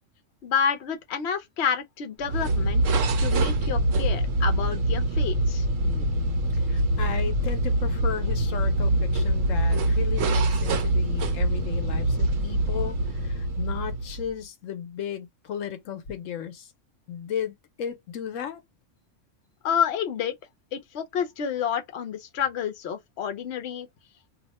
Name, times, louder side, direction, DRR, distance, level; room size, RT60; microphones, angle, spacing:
voice 1, 0.4-2.8 3.2-5.7 19.6-20.3 20.7-23.9, left 7 dB, 65° left, 0.9 m, -29 dB
sound 1, 2.2-14.4, right 1 dB, 90° right, 1.0 m, -24 dB
voice 2, 5.8-6.3 6.5-16.7 17.1-18.6, left 8 dB, 90° left, 1.1 m, -35 dB
2.8 x 2.1 x 4.0 m
omnidirectional pair, 1.3 m